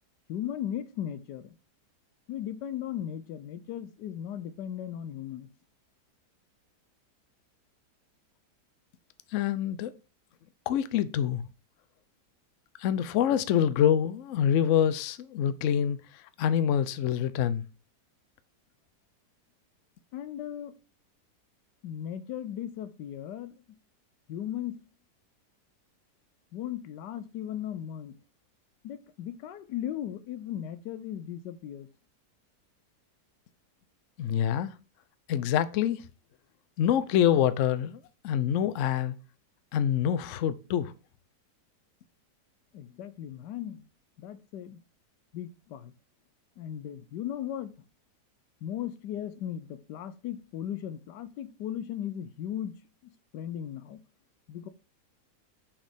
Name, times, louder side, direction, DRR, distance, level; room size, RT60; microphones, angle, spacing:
voice 1, 0.3-1.5 2.3-5.5 20.1-20.7 21.8-23.6 24.3-24.8 26.5-28.2 28.8-31.9 42.7-43.8 44.2-44.8 45.3-45.9 46.6-47.8 48.6-52.8 53.3-54.0 54.5-54.7, left 10 dB, 85° left, 1.3 m, -37 dB
voice 2, 9.3-9.9 10.7-11.4 12.8-16.0 16.4-17.6 34.2-34.7 35.3-36.0 36.8-39.1 39.7-40.9, left 9 dB, 70° left, 0.7 m, -26 dB
6.0 x 4.3 x 4.9 m
omnidirectional pair, 1.8 m